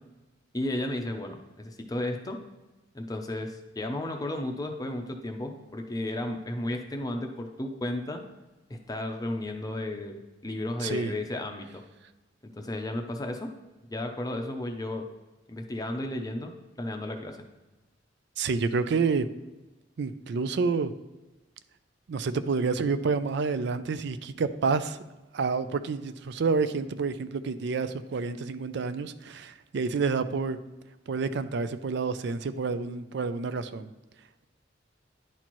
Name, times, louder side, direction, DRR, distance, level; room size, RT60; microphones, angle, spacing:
voice 1, 0.5-2.4 2.9-8.2 8.7-10.2 10.4-11.8 12.5-13.5 13.9-15.1 15.5-16.5 16.8-17.4, left 1 dB, 20° left, 4 dB, 0.6 m, -33 dB
voice 2, 18.4-19.3 20.0-20.9 22.1-25.0 25.3-30.6 31.1-33.9, right 4 dB, 65° right, 12 dB, 0.4 m, -28 dB
10.5 x 4.3 x 3.0 m, 1.1 s
head